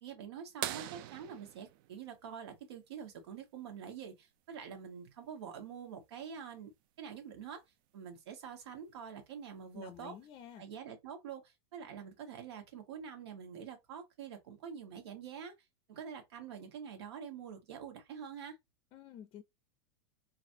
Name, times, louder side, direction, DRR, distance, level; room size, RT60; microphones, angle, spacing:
voice 1, 0.0-6.7 7.0-7.6 7.9-10.1 10.6-15.5 15.9-18.6, right 7 dB, 85° right, 1.3 m, -46 dB
sound 1, 0.6-3.1 5.0-5.1 7.3-7.4 9.1-9.4 10.2-10.3, right 13 dB, 55° right, 0.5 m, -42 dB
voice 2, 9.7-10.7 18.9-19.4, left 10 dB, 35° left, 0.5 m, -50 dB
4.0 x 2.5 x 2.7 m
supercardioid pair, 130°, 14 cm